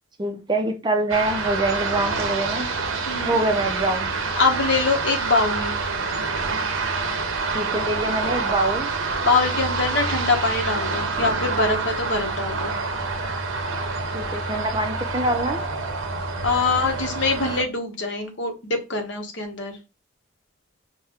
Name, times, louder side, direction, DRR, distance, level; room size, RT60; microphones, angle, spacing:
voice 1, 0.2-2.7 3.3-4.1 7.5-8.9 14.1-15.6, right 2 dB, 20° right, 5 dB, 0.4 m, -25 dB
sound 1, 1.1-17.6, right 4 dB, 75° right, 0.7 m, -27 dB
voice 2, 3.1-3.4 4.4-5.7 9.2-12.7 16.4-19.8, left 3 dB, 60° left, 3 dB, 1.0 m, -23 dB
5.6 x 2.1 x 3.5 m, 0.29 s
head